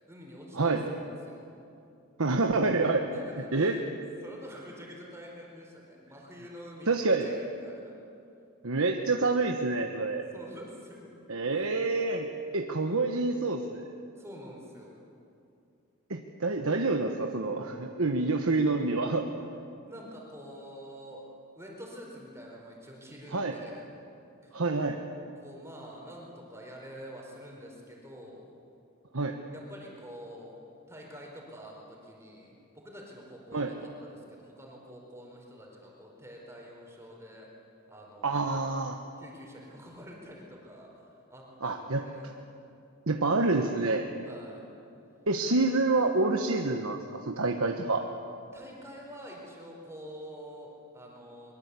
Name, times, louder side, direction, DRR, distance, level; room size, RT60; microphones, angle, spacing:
voice 1, 0.1-1.5 3.1-3.9 4.2-7.9 10.3-11.1 11.4-11.7 14.2-15.0 19.9-21.2 21.5-23.9 24.4-24.6 25.4-28.6 29.5-30.6 30.9-37.5 37.9-38.5 39.2-42.4 44.2-44.6 48.5-51.5, equal, 10° right, -1 dB, 4.6 m, -47 dB
voice 2, 2.2-3.1 3.5-3.7 6.9-7.3 8.6-10.3 11.3-13.8 16.1-19.3 23.3-23.5 24.5-25.0 29.1-29.3 33.5-33.7 38.2-39.0 41.6-42.0 43.1-44.1 45.3-48.1, right 3 dB, 75° right, 4 dB, 1.3 m, -27 dB
23.0 x 22.5 x 8.4 m, 2.6 s
head